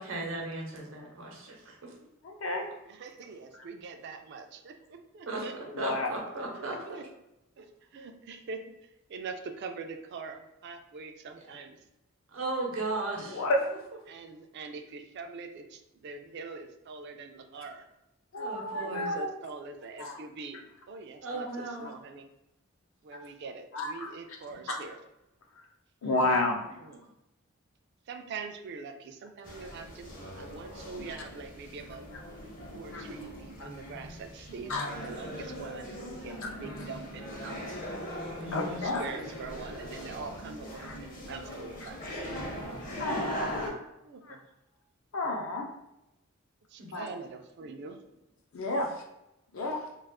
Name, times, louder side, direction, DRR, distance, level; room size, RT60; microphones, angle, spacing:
voice 1, 0.0-1.9 5.3-5.4 5.8-7.0 12.3-13.4 18.4-19.1 21.2-21.9 26.0-26.2 38.4-38.9 46.8-46.9, right 2 dB, 85° right, 0 dB, 0.7 m, -36 dB
voice 2, 2.2-2.6 5.7-6.1 13.3-13.6 18.3-19.3 20.0-20.2 23.7-24.1 26.0-26.6 31.1-31.2 32.9-33.0 33.6-33.7 34.7-34.9 38.5-39.0 40.8-40.9 41.8-41.9 43.0-43.7 44.3-44.4 45.1-45.7 46.9-47.1 48.5-48.9 49.5-49.8, left 2 dB, 80° left, 2 dB, 0.5 m, -30 dB
voice 3, 2.8-5.5 6.3-7.0 7.6-11.8 14.1-17.9 18.7-22.3 23.0-25.0 26.8-27.0 28.1-32.1 32.7-37.6 38.7-42.2 44.0-44.4 46.7-48.0, right 4 dB, 55° right, 6 dB, 0.3 m, -43 dB
sound 1, 29.4-43.7, equal, 45° left, 0.6 m, -40 dB
2.3 x 2.3 x 3.4 m, 0.88 s
head